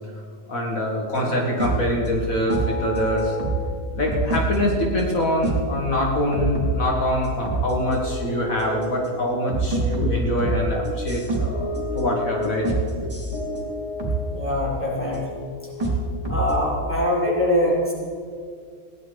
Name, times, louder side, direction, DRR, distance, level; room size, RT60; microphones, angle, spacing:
voice 1, 0.5-3.4 4.0-11.7 11.9-12.7 13.0-13.1, equal, 65° left, -1 dB, 2.2 m, -24 dB
sound 1, 1.1-2.0 2.5-3.8 4.1-5.8 6.1-7.1 7.5-9.1 9.5-14.4 15.1-16.6, right 1 dB, 25° right, 3.6 m, -27 dB
voice 2, 14.3-15.4 15.8-15.9 16.2-17.9, left 1 dB, 10° left, -4 dB, 3.5 m, -23 dB
17.0 x 11.0 x 5.2 m, 2.1 s
omnidirectional pair, 1.6 m